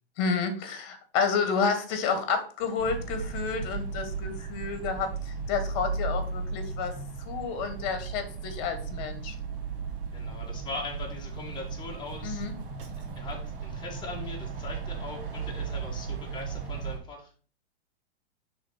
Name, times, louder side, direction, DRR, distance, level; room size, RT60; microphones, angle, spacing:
voice 1, 0.2-6.9 7.3-9.3 12.2-12.5, left 5 dB, 45° left, 8 dB, 1.6 m, -30 dB
sound 1, 2.8-17.0, right 5 dB, 55° right, 1.7 m, -36 dB
voice 2, 10.1-12.4 13.2-17.3, left 3 dB, 15° left, -2 dB, 2.0 m, -40 dB
5.0 x 4.0 x 5.6 m, 0.41 s
hypercardioid pair, 130°, 32 cm